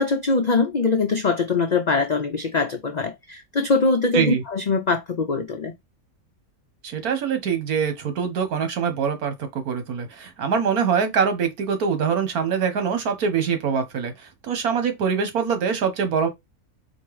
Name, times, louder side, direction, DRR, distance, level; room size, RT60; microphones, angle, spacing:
voice 1, 0.0-5.7, left 4 dB, 90° left, 0.3 m, -22 dB
voice 2, 6.8-14.1 14.4-16.3, right 6 dB, 80° right, 1.6 m, -24 dB
4.5 x 2.9 x 3.1 m
omnidirectional pair, 1.6 m